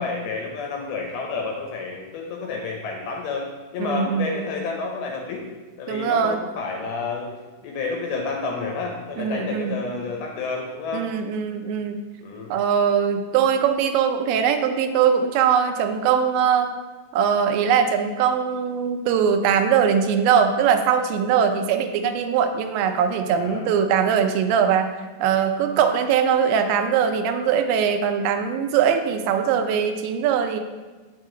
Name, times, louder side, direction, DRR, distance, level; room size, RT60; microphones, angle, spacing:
voice 1, 0.0-3.5 3.7-5.5 5.8-7.4 7.6-11.1 12.2-12.5 21.3-21.7 23.4-23.7, left 4 dB, 75° left, 0 dB, 2.4 m, -30 dB
voice 2, 3.8-4.3 5.9-6.4 9.2-9.7 10.9-12.0 12.5-16.7 17.1-24.9 25.2-30.6, right 7 dB, 85° right, 6 dB, 2.9 m, -21 dB
8.3 x 6.3 x 3.8 m, 1.3 s
omnidirectional pair, 5.1 m